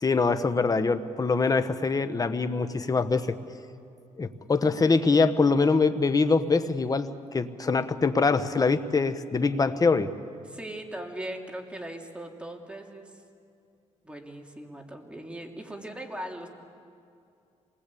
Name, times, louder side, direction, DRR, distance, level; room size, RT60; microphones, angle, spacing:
voice 1, 0.0-3.3 4.2-10.1, left 4 dB, 30° left, 10 dB, 1.2 m, -24 dB
voice 2, 10.5-13.1 14.0-16.5, right 1 dB, 10° right, 2 dB, 2.8 m, -39 dB
27.0 x 20.0 x 8.5 m, 2.5 s
cardioid pair, 90°, 12 cm